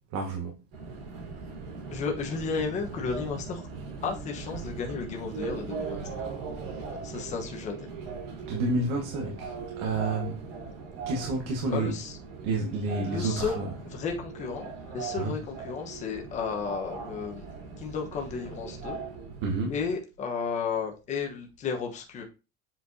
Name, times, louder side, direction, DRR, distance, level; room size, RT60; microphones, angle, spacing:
voice 1, 0.1-0.6 6.7-6.8 8.5-10.5 11.1-11.9 12.4-13.7 15.2-15.3 19.4-19.7, right 2 dB, 55° right, 1.3 m, -30 dB
Subway metro underground, 0.7-20.0, right 5 dB, 80° right, 3.5 m, -39 dB
voice 2, 1.9-3.6 4.0-6.0 6.8-7.9 11.7-12.2 13.0-13.6 13.9-17.5 17.8-19.0 19.7-22.2, left 5 dB, 25° left, 1.1 m, -33 dB
7.8 x 4.4 x 2.7 m
cardioid pair, 180°, 29 cm